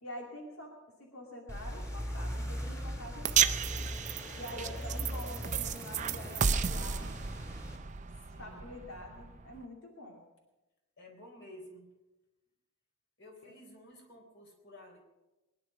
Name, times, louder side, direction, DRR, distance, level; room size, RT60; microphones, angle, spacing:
voice 1, 0.0-0.7 1.0-3.9 4.4-7.2 8.4-10.2 13.4-13.5, left 1 dB, 80° left, 0 dB, 2.5 m, -46 dB
sound 1, 1.5-7.8, equal, 15° left, 2.7 m, -39 dB
sound 2, 3.2-9.6, right 7 dB, 35° right, 0.5 m, -33 dB
voice 2, 8.3-8.6 11.0-11.9 13.2-15.0, left 1 dB, 55° left, 2 dB, 3.9 m, -52 dB
21.5 x 10.5 x 5.9 m, 1.0 s
head